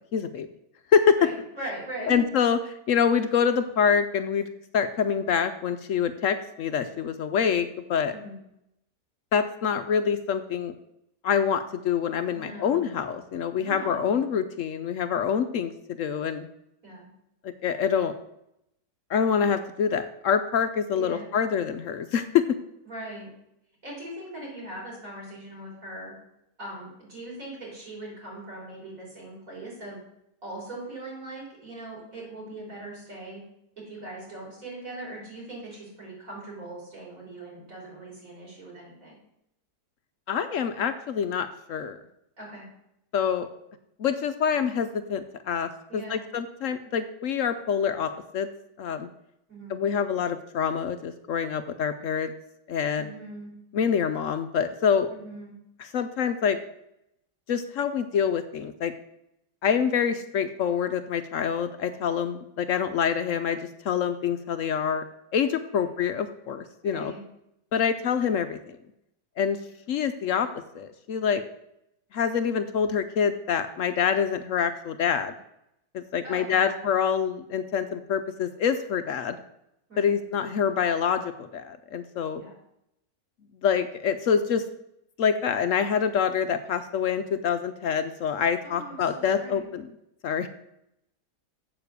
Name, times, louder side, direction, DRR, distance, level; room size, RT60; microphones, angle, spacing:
voice 1, 0.1-0.5 0.9-1.2 2.1-4.5 4.7-8.1 9.3-10.7 11.2-16.5 17.4-18.1 19.1-22.4 40.3-42.0 43.1-43.5 44.0-48.5 48.8-49.1 49.7-52.3 52.7-53.1 53.7-55.1 55.8-56.6 57.5-58.9 59.6-63.6 63.8-65.0 65.3-67.1 67.7-68.8 69.4-69.6 69.9-70.5 70.7-71.4 72.1-75.3 75.9-79.4 80.0-82.4 83.6-84.6 85.2-89.8 90.2-90.5, left 7 dB, 65° left, 10 dB, 0.8 m, -26 dB
voice 2, 1.2-2.2 8.1-8.4 12.3-12.9 13.6-14.2 16.8-17.1 20.9-21.3 22.8-23.3 23.8-26.1 26.6-30.0 30.4-33.4 33.9-39.2 42.4-42.7 45.9-46.2 49.5-49.7 53.0-53.5 55.1-55.5 65.7-65.9 66.8-67.2 76.2-76.8 79.9-80.2 82.3-82.5 88.6-89.7, right 1 dB, 50° right, -3 dB, 4.4 m, -40 dB
7.7 x 7.1 x 6.7 m, 0.80 s
omnidirectional pair, 1.8 m